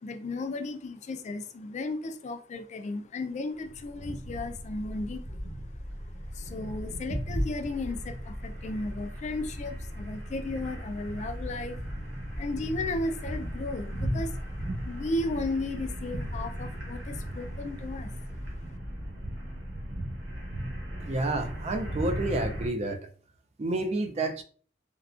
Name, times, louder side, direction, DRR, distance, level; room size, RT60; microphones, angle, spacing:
voice 1, 0.0-5.7 6.3-11.8 12.3-18.7, left 2 dB, 40° left, 0.3 m, -35 dB
sound 1, 3.6-22.7, equal, 80° right, 1.0 m, -36 dB
voice 2, 21.1-23.0 23.6-24.4, right 2 dB, 35° right, 0.4 m, -29 dB
3.5 x 2.2 x 2.4 m
head